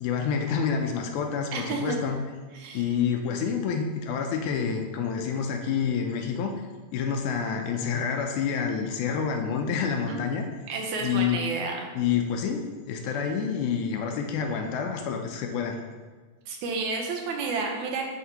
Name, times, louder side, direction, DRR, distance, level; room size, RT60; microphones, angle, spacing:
voice 1, 0.0-2.2 2.7-6.6 6.9-10.4 11.0-11.4 11.9-15.8, left 6 dB, 85° left, 3 dB, 2.0 m, -28 dB
voice 2, 1.5-2.0 2.5-2.8 10.1-10.3 10.7-11.9 16.5-18.0, right 4 dB, 75° right, 1 dB, 2.1 m, -31 dB
9.3 x 3.6 x 2.9 m, 1.4 s
omnidirectional pair, 3.5 m